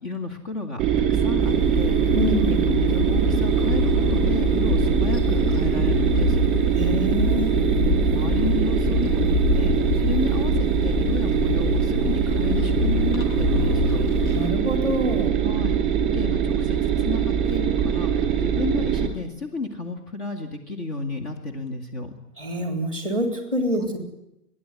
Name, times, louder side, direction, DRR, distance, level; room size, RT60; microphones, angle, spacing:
voice 1, 0.0-6.4 8.1-14.0 15.4-15.8 16.1-22.1 23.7-23.9, left 3 dB, 40° left, 4 dB, 2.3 m, -32 dB
sound 1, 0.8-19.1, right 8 dB, 15° right, 2.8 m, -22 dB
sound 2, 1.4-14.5, left 3 dB, 60° left, 2.4 m, -26 dB
voice 2, 2.1-2.6 6.8-7.6 14.3-15.3 22.4-24.0, equal, 10° left, 5 dB, 3.4 m, -26 dB
29.5 x 11.5 x 9.8 m, 0.85 s
hypercardioid pair, 165°, 47 cm